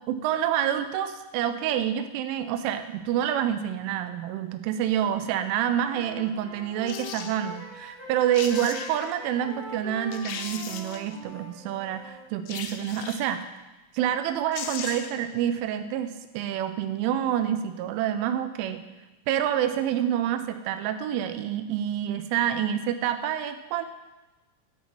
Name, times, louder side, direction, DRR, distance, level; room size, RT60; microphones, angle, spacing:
voice 1, 0.1-13.4 13.9-18.8 19.3-23.9, right 10 dB, 85° right, 10 dB, 3.0 m, -27 dB
Wind instrument woodwind instrument, 5.0-5.4 5.7-12.3, equal, 15° left, 0.8 m, -43 dB
sound 1, 6.9-7.3 8.1-8.2 8.3-9.2 9.7-9.8 10.1-11.2 12.5-13.4 14.2-14.3 14.5-15.3 15.6-15.7, left 7 dB, 85° left, 2.6 m, -37 dB
13.0 x 4.3 x 4.4 m, 1.1 s
omnidirectional pair, 5.7 m